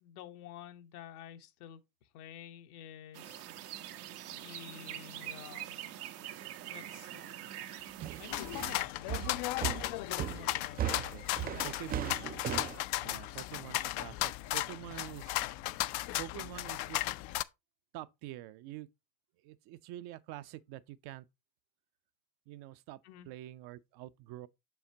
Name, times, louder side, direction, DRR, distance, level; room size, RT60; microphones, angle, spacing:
voice 1, 0.0-3.4 4.3-5.8 6.7-7.3 8.2-9.1 9.8-11.1 11.4-12.2 13.1-13.5 23.0-23.3, left 10 dB, 75° left, 1.3 m, -50 dB
sound 1, 3.1-8.8, right 12 dB, 85° right, 1.2 m, -44 dB
sound 2, 8.0-12.8, right 11 dB, 25° right, 0.3 m, -37 dB
sound 3, 8.3-17.4, left 17 dB, 60° left, 0.6 m, -36 dB
voice 2, 10.9-11.3 11.6-12.2 13.0-15.4 16.2-17.1 17.9-18.9 19.4-21.3 22.5-23.0 23.3-24.5, right 15 dB, 55° right, 0.7 m, -46 dB
7.1 x 7.0 x 2.8 m
supercardioid pair, 95°, 45 cm